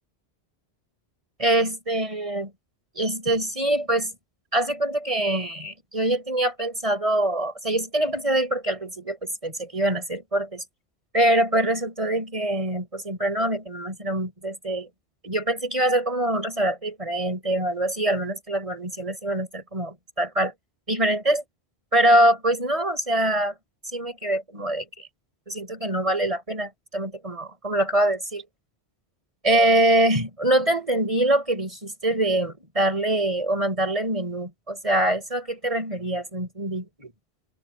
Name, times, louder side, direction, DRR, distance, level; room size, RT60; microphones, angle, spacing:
voice 1, 1.4-2.5 2.9-4.1 4.5-10.6 11.1-14.9 15.2-20.5 20.9-21.4 21.9-23.5 23.9-25.1 25.5-28.4 29.4-37.1, right 1 dB, 30° right, 6.4 m, -24 dB
open air
omnidirectional pair, 1.1 m